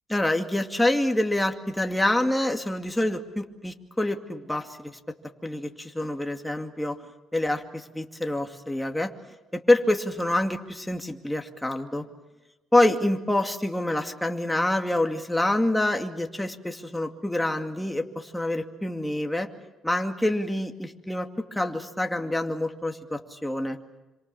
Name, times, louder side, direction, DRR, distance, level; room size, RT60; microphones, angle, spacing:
voice 1, 0.1-5.0 5.4-7.0 7.3-9.1 9.5-12.1 12.7-19.5 19.8-23.8, left 1 dB, 5° left, 4 dB, 2.4 m, -26 dB
27.5 x 26.5 x 7.2 m, 1.1 s
cardioid pair, 105°, 0 cm